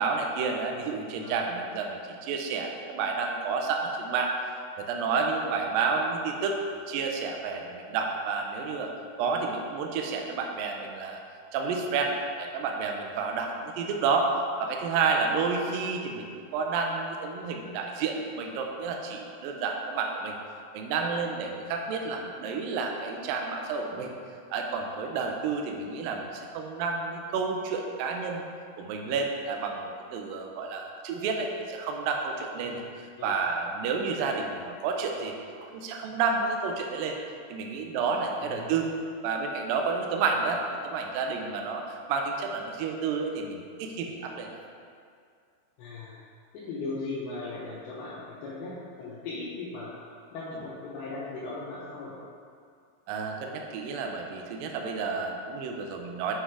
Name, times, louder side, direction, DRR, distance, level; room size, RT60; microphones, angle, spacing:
voice 1, 0.0-6.6 6.9-8.9 9.2-11.2 11.5-12.1 12.4-20.3 20.7-24.1 24.5-28.4 28.8-32.8 33.2-35.3 35.6-37.2 37.5-38.9 39.2-44.6 53.1-56.3, right 4 dB, 85° right, 2 dB, 2.0 m, -30 dB
voice 2, 38.4-38.7 45.8-46.2 46.5-49.9 50.3-52.1, left 3 dB, 75° left, -9 dB, 3.2 m, -38 dB
7.7 x 6.3 x 4.8 m, 2.3 s
omnidirectional pair, 5.1 m